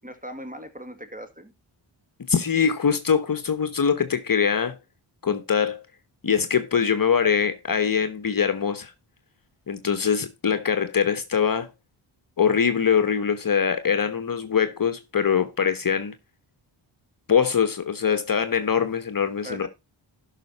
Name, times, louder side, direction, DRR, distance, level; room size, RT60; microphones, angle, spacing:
voice 1, 0.0-1.5 19.4-19.7, equal, 15° right, 2.0 m, -39 dB
voice 2, 2.3-4.8 5.2-5.8 6.2-8.9 9.7-11.7 12.4-16.1 17.3-19.7, left 7 dB, 45° left, 1.1 m, -23 dB
12.0 x 5.9 x 4.1 m
cardioid pair, 50°, 49 cm